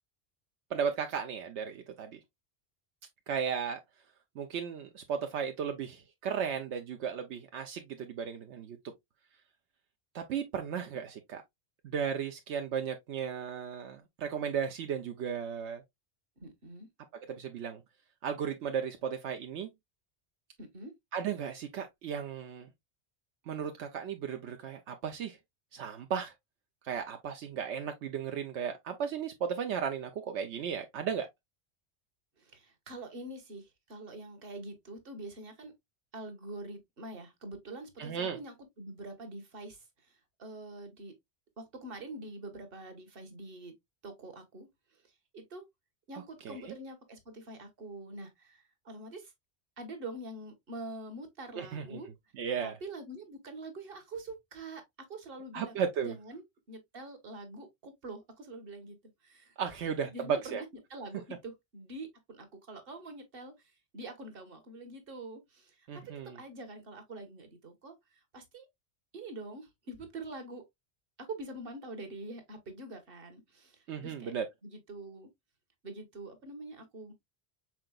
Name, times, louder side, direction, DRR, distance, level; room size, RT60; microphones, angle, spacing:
voice 1, 0.7-2.2 3.3-3.8 4.4-8.8 10.1-11.4 11.8-15.8 17.3-17.8 18.2-19.7 21.1-22.7 23.5-25.4 25.7-26.3 26.8-31.3 38.0-38.4 46.4-46.7 51.6-52.0 52.4-52.7 55.5-56.1 59.6-60.6 65.9-66.4 73.9-74.4, right 7 dB, 80° right, 1.0 m, -35 dB
voice 2, 16.4-16.9 20.6-20.9 32.4-35.7 36.1-41.1 41.6-43.7 44.0-45.6 46.1-49.3 49.8-52.1 52.6-56.4 56.7-59.0 59.2-59.5 60.0-60.6 60.9-68.7 69.1-70.6 71.2-74.3 74.6-75.3 75.8-77.1, right 2 dB, 55° right, 1.5 m, -45 dB
6.0 x 3.8 x 2.3 m
omnidirectional pair, 1.1 m